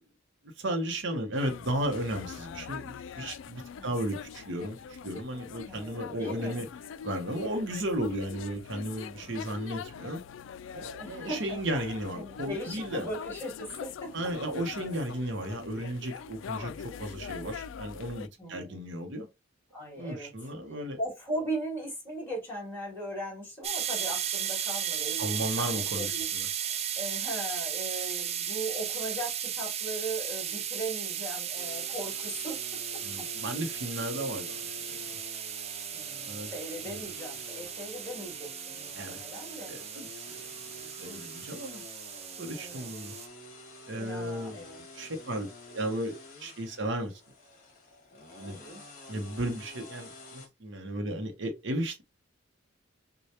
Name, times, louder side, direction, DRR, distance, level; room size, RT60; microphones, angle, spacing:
voice 1, 0.6-6.7 7.0-10.2 10.7-13.1 14.1-19.3 20.0-21.0 25.2-26.5 33.0-35.2 36.2-36.5 36.8-37.1 39.0-40.5 41.0-41.8 42.4-43.1 43.9-44.6 44.9-47.2 48.4-48.6 49.1-52.0, right 1 dB, 60° right, 0.8 m, -34 dB
sound 1, 1.4-18.3, left 7 dB, 65° left, 0.3 m, -43 dB
voice 2, 5.7-6.6 9.1-9.5 11.0-14.1 18.4-18.8 19.7-26.3 26.6-32.6 35.9-39.7 40.7-41.2 42.5-42.9 44.0-44.8 48.4-48.8, right 1 dB, 10° left, 2.2 m, -39 dB
sound 2, 23.6-43.3, right 9 dB, 30° right, 0.4 m, -35 dB
sound 3, 31.5-50.5, left 3 dB, 40° left, 1.5 m, -49 dB
6.4 x 2.2 x 2.8 m
head